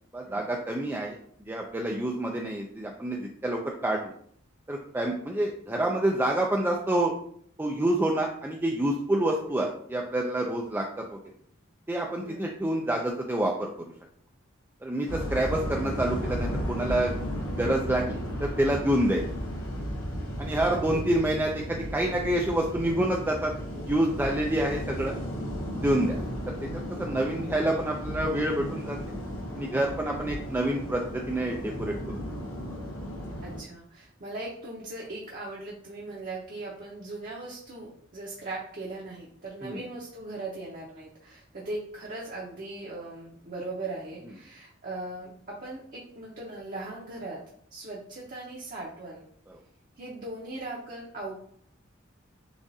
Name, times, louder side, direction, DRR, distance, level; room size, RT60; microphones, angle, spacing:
voice 1, 0.1-1.2 1.5-4.1 4.7-7.1 7.6-11.2 11.9-13.7 14.8-17.1 17.6-19.2 20.4-23.5 23.9-25.1 25.8-26.1 26.7-29.0 29.5-31.9 39.6-39.8, right 1 dB, 10° right, 0 dB, 0.3 m, -27 dB
sound 1, 15.1-33.6, equal, 85° left, 0.9 m, -34 dB
voice 2, 20.7-21.3 26.1-26.3 30.2-30.3 33.4-47.4 47.7-49.3 50.0-51.4, right 2 dB, 45° right, -4 dB, 0.8 m, -39 dB
7.0 x 2.5 x 2.7 m, 0.63 s
head